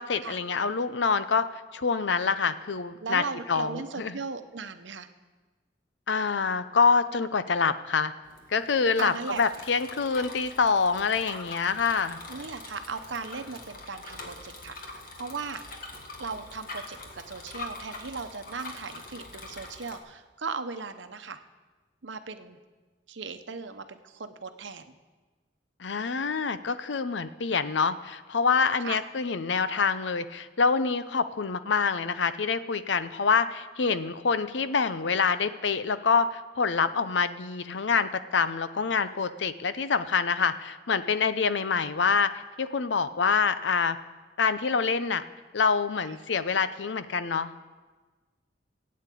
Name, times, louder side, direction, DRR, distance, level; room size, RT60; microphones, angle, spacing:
voice 1, 0.0-1.5 1.7-3.2 3.5-4.2 6.1-8.1 8.5-12.2 25.8-42.3 42.6-44.0 44.4-45.2 45.5-47.6, left 5 dB, 75° left, 12 dB, 0.7 m, -26 dB
voice 2, 3.0-5.1 9.0-9.4 12.3-15.6 16.2-21.4 22.0-22.6 23.1-24.8 28.8-29.0 46.0-46.2, right 4 dB, 80° right, 9 dB, 0.9 m, -37 dB
Bicycle, 8.2-20.0, left 2 dB, 50° left, 1.7 m, -44 dB
14.5 x 8.6 x 8.5 m, 1.3 s
head